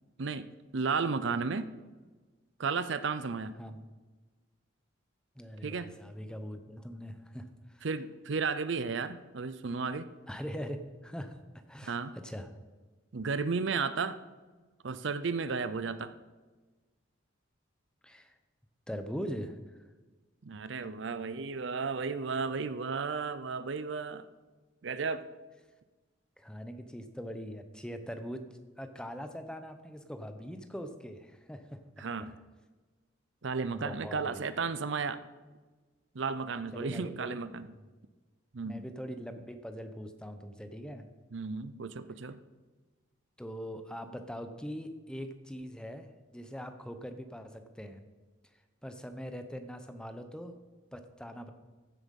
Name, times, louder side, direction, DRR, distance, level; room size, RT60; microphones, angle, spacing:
voice 1, 0.7-1.7 2.6-3.5 5.6-5.9 7.8-10.1 11.8-12.1 13.1-14.2 14.8-16.1 20.4-24.3 24.8-25.3 32.0-32.3 33.4-35.2 36.1-37.7 38.5-38.9 41.3-42.4, right 4 dB, 65° right, 13 dB, 0.6 m, -33 dB
voice 2, 5.4-7.9 10.3-11.4 11.7-12.0 12.2-12.5 18.0-18.4 18.9-19.6 26.4-28.4 28.8-31.8 33.7-34.4 36.7-37.4 37.7-37.8 38.6-41.0 43.4-48.0 48.8-50.5 50.9-51.5, equal, 5° left, 8 dB, 0.8 m, -42 dB
15.0 x 7.9 x 5.4 m, 1.3 s
head